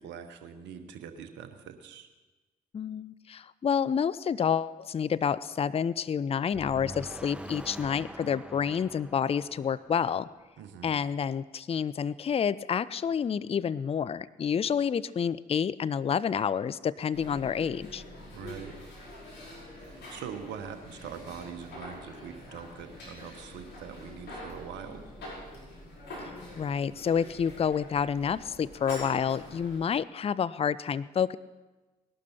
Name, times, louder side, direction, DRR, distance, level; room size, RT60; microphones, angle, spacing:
voice 1, 0.0-2.1 10.6-10.9 18.3-18.7 19.7-25.0, right 7 dB, 70° right, 8 dB, 1.1 m, -43 dB
voice 2, 2.7-10.3 10.8-18.0 26.6-31.4, left 7 dB, 30° left, 18 dB, 0.5 m, -29 dB
sound 1, 6.5-10.6, right 1 dB, 5° right, 0.8 m, -45 dB
sound 2, 17.1-29.8, left 1 dB, 60° left, 5.5 m, -45 dB
19.5 x 12.0 x 4.4 m, 1.2 s
hypercardioid pair, 40°, 19 cm